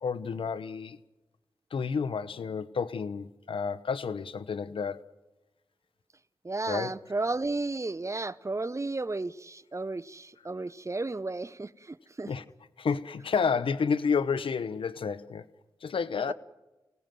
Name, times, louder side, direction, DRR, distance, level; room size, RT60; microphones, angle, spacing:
voice 1, 0.0-1.0 1.7-5.0 6.7-6.9 12.3-12.4 12.8-15.4 15.8-16.3, left 5 dB, 80° left, 1.0 m, -30 dB
voice 2, 6.4-12.3 16.3-16.4, right 3 dB, 35° right, 0.9 m, -33 dB
29.5 x 18.0 x 7.7 m
cardioid pair, 40°, 9 cm